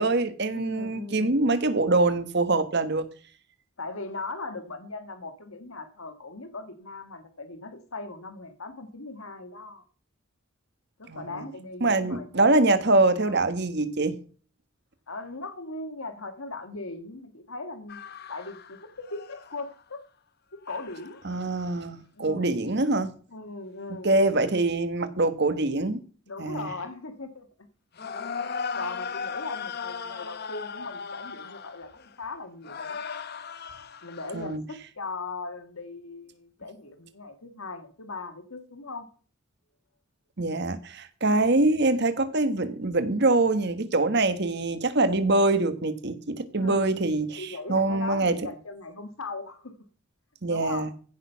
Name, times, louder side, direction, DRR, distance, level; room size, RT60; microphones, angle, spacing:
voice 1, 0.0-3.0 11.1-11.4 11.8-14.2 21.2-23.1 24.0-26.0 26.4-26.7 34.3-34.6 40.4-48.4 50.4-50.9, right 2 dB, 50° right, 1.3 m, -24 dB
voice 2, 0.5-1.3 3.8-9.8 11.0-12.3 13.2-13.3 15.1-18.0 18.3-20.0 20.5-21.2 22.2-22.6 23.3-24.1 26.3-27.7 28.7-31.9 32.2-33.0 34.0-39.1 46.6-46.9 47.4-49.7 50.5-50.9, left 3 dB, 80° left, 1.8 m, -39 dB
sound 1, 17.9-19.8 20.6-21.3 21.7-21.8 28.0-32.3 32.6-34.6, left 5 dB, 50° left, 0.8 m, -37 dB
15.5 x 6.3 x 5.7 m
head